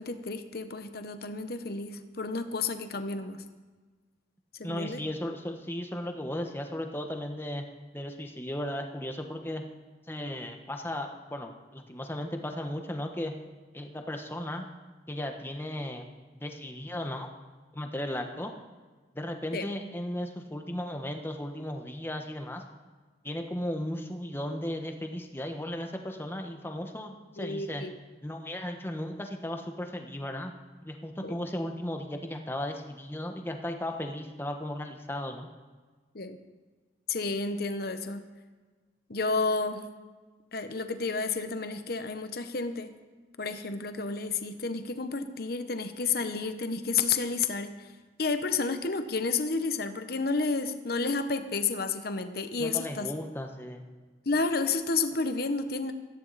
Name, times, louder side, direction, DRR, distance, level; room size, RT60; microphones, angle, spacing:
voice 1, 0.0-3.4 4.6-5.0 19.5-19.7 27.4-28.0 31.2-31.4 36.1-36.4 37.1-38.2 39.1-39.8 40.5-42.9 43.4-47.9 48.2-53.1 54.3-55.9, left 4 dB, 55° left, 9 dB, 1.0 m, -31 dB
voice 2, 4.6-7.6 7.9-9.6 10.1-13.3 13.7-14.7 15.1-16.1 16.4-17.3 17.7-18.5 19.1-22.6 23.2-27.8 28.2-30.5 30.8-35.5 52.6-53.9, left 1 dB, 10° left, 4 dB, 1.2 m, -36 dB
17.5 x 14.5 x 4.1 m, 1.4 s
head